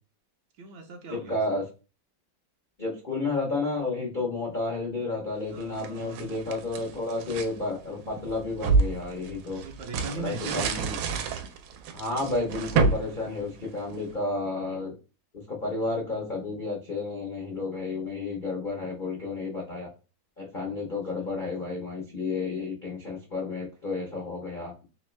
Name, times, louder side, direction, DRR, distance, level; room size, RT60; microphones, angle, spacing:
voice 1, 0.6-1.4 5.5-6.3 9.6-10.7 21.2-21.3, right 3 dB, 70° right, 3 dB, 1.1 m, -39 dB
voice 2, 1.1-1.6 2.8-9.6 10.2-10.9 11.9-14.9 15.5-19.9 20.4-24.7, left 3 dB, 75° left, -2 dB, 0.4 m, -31 dB
sound 1, 5.6-7.5 8.1-14.1, right 4 dB, 90° right, 1.4 m, -29 dB
3.5 x 3.0 x 3.2 m, 0.32 s
omnidirectional pair, 2.3 m